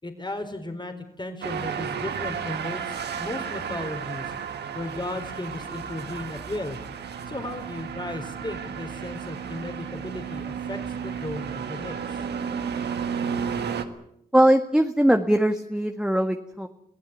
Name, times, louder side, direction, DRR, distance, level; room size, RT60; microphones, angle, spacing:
voice 1, 0.0-6.8 7.3-12.2, left 1 dB, 25° left, 6 dB, 4.3 m, -35 dB
sound 1, 1.4-13.8, right 7 dB, 85° right, 1.7 m, -33 dB
voice 2, 14.3-16.7, right 1 dB, 5° right, 5 dB, 1.8 m, -21 dB
25.5 x 16.0 x 8.4 m, 0.74 s
supercardioid pair, 40°, 17 cm